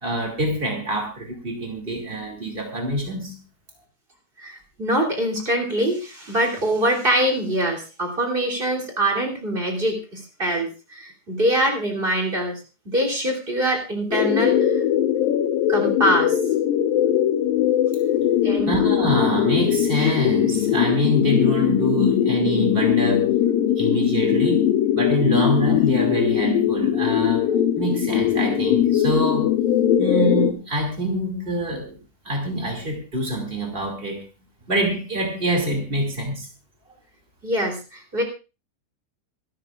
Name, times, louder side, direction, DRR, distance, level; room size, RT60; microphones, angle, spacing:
voice 1, 0.0-3.4 18.6-23.3 23.7-24.7 24.9-29.5 30.0-32.0 32.2-34.2 34.7-36.5, right 1 dB, 45° right, 2 dB, 0.7 m, -25 dB
voice 2, 4.4-12.6 12.9-14.8 15.7-16.4 18.4-18.8 37.4-38.2, right 1 dB, 15° right, 3 dB, 2.1 m, -24 dB
sound 1, 14.1-30.5, left 10 dB, 80° left, 2.0 m, -20 dB
25.5 x 12.5 x 2.5 m, 0.31 s
omnidirectional pair, 5.6 m